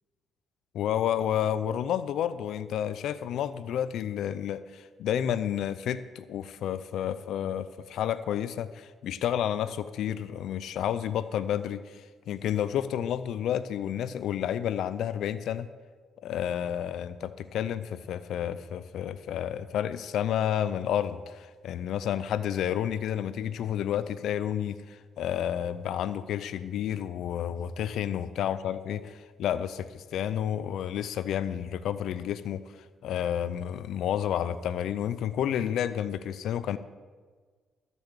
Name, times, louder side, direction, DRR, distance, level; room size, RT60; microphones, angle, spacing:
voice 1, 0.7-12.0 12.3-15.7 16.2-32.6 33.0-36.8, left 10 dB, 75° left, 13 dB, 0.5 m, -30 dB
12.5 x 7.0 x 6.7 m, 1.5 s
cardioid pair, 90°, 0 cm